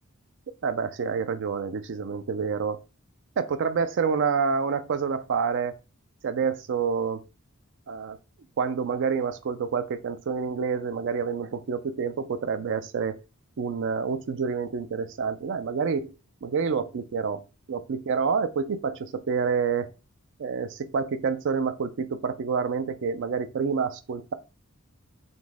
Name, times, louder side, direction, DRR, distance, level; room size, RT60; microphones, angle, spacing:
voice 1, 0.6-2.8 3.4-5.7 6.2-7.2 7.9-8.2 8.6-13.2 13.6-16.1 16.4-17.4 17.7-19.9 20.4-24.3, right 5 dB, 60° right, 0.4 m, -28 dB
4.0 x 2.6 x 3.5 m
head